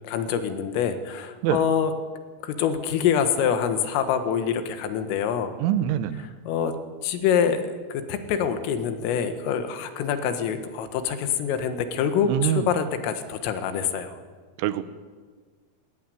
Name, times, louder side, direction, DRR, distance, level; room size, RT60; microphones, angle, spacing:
voice 1, 0.0-1.9 2.4-5.6 6.5-6.7 7.0-14.2, left 7 dB, 85° left, 8 dB, 4.1 m, -25 dB
voice 2, 5.6-6.3 12.2-12.7 14.6-14.8, right 11 dB, 80° right, 13 dB, 3.3 m, -24 dB
21.0 x 18.5 x 9.3 m, 1.5 s
omnidirectional pair, 5.8 m